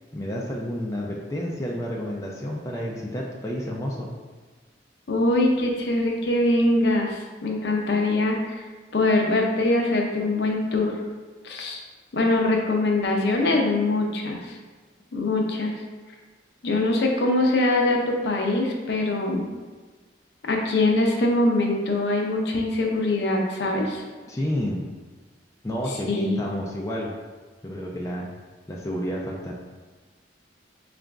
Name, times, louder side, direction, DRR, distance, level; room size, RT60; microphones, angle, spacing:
voice 1, 0.1-4.1 24.3-24.8 25.6-27.1 27.6-28.3 28.7-29.5, equal, 15° left, -3 dB, 0.3 m, -30 dB
voice 2, 5.1-8.6 8.9-11.0 11.4-11.8 12.1-14.5 15.1-15.8 16.6-19.5 20.5-24.0 26.1-26.4, left 2 dB, 65° left, 0 dB, 0.6 m, -23 dB
3.9 x 2.5 x 3.3 m, 1.4 s
head